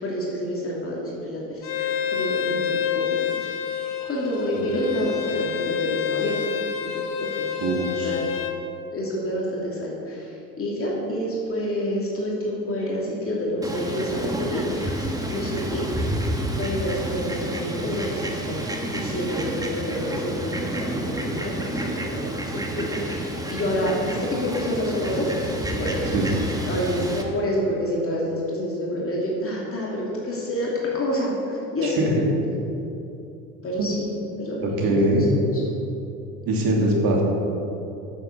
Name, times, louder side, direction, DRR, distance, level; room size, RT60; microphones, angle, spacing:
voice 1, 0.0-3.5 4.0-6.5 6.8-7.5 7.9-8.2 8.9-15.9 16.6-18.6 18.9-22.3 22.5-26.2 26.7-32.0 33.6-33.9 34.4-35.6, equal, 25° left, -4 dB, 2.7 m, -28 dB
Bowed string instrument, 1.6-8.6, left 8 dB, 45° left, 1.1 m, -28 dB
voice 2, 7.6-8.2 26.1-26.3 31.8-32.4 33.8-33.9 34.6-35.3 36.5-37.2, right 1 dB, 45° right, -2 dB, 2.8 m, -22 dB
Fowl, 13.6-27.2, right 1 dB, 5° right, 1.3 m, -30 dB
9.3 x 7.6 x 6.8 m, 2.8 s
hypercardioid pair, 80°, 48 cm